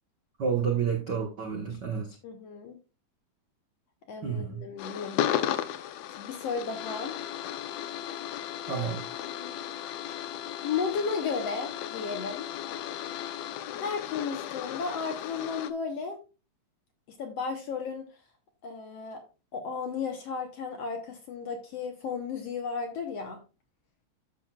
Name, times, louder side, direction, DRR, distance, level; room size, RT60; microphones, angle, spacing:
voice 1, 0.4-2.2 4.2-4.6 8.7-9.0, right 6 dB, 75° right, 2 dB, 1.0 m, -30 dB
voice 2, 2.2-2.8 4.1-5.2 6.2-7.1 8.7-8.9 9.1-9.6 10.6-12.5 13.8-16.2 17.1-18.0 18.6-19.2 19.5-23.4, left 5 dB, 65° left, 4 dB, 1.6 m, -34 dB
sound 1, 4.8-15.7, left 11 dB, 90° left, 1.4 m, -35 dB
12.5 x 6.3 x 2.3 m, 0.32 s
omnidirectional pair, 3.9 m